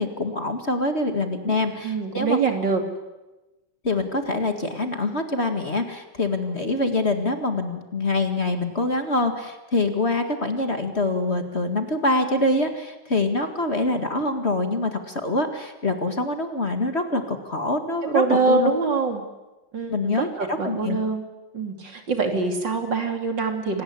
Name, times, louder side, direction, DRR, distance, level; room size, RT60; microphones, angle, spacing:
voice 1, 0.0-2.4 3.8-18.7 19.9-21.0, left 2 dB, 35° left, 6 dB, 2.2 m, -25 dB
voice 2, 1.8-2.8 18.1-19.2 19.7-21.2 21.5-23.8, right 4 dB, 65° right, 4 dB, 3.5 m, -24 dB
26.5 x 19.0 x 9.8 m, 1.1 s
omnidirectional pair, 2.2 m